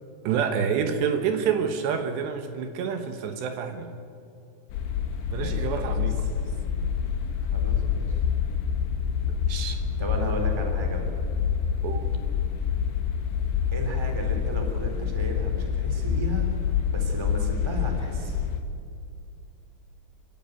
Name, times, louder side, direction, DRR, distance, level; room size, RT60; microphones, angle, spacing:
voice 1, 0.2-3.9 5.3-6.2 7.8-7.9 9.3-9.8 11.8-12.1, right 7 dB, 75° right, 7 dB, 3.3 m, -28 dB
sound 1, 4.7-18.6, left 7 dB, 80° left, 3.8 m, -27 dB
voice 2, 5.3-5.9 6.2-6.4 7.4-8.1 9.6-11.1 13.7-16.4 16.9-18.4, right 1 dB, 5° right, 3 dB, 2.3 m, -34 dB
30.0 x 12.5 x 9.0 m, 2.5 s
omnidirectional pair, 5.3 m